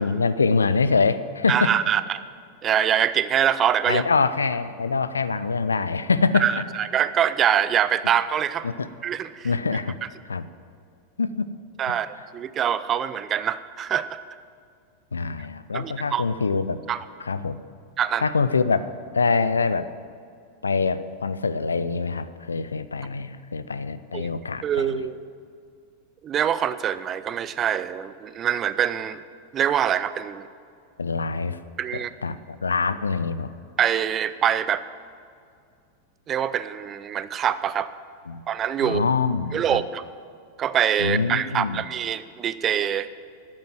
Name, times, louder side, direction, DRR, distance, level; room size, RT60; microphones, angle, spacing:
voice 1, 0.0-1.7 3.9-6.4 8.6-8.9 9.4-10.0 10.3-10.5 11.2-11.5 11.9-12.0 15.1-16.8 17.2-17.6 18.2-19.9 20.6-25.0 31.0-31.6 31.9-33.5 38.3-38.4 38.8-39.8 41.0-41.8, left 4 dB, 75° left, 14 dB, 0.4 m, -24 dB
voice 2, 1.5-2.2 2.6-4.0 6.4-8.7 9.0-9.5 11.8-14.2 15.7-16.2 16.9-17.0 18.0-18.2 24.1-24.3 24.6-25.2 26.2-29.2 29.5-30.5 31.8-32.1 33.8-34.8 36.3-37.9 38.5-39.1 39.5-40.0 40.6-43.1, right 9 dB, 25° right, 15 dB, 0.4 m, -24 dB
9.1 x 7.5 x 9.1 m, 2.3 s
figure-of-eight pair, 90°, 0 cm